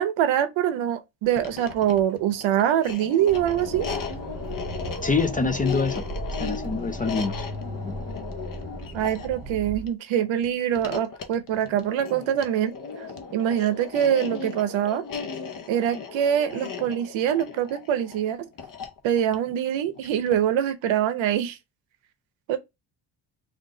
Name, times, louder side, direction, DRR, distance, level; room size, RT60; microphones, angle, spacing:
voice 1, 0.0-3.9 8.9-12.7 13.0-13.1 13.3-15.0 15.7-18.5 19.0-21.6 22.5-22.6, right 10 dB, 85° right, 0.7 m, -24 dB
sound 1, 1.2-20.5, left 6 dB, 45° left, 0.8 m, -37 dB
Accelerating revving vroom, 3.3-9.9, right 1 dB, 20° right, 0.8 m, -36 dB
voice 2, 5.0-6.0 6.4-7.3 7.8-7.9, left 4 dB, 20° left, 0.3 m, -25 dB
3.6 x 2.5 x 3.7 m
cardioid pair, 105°, 45 cm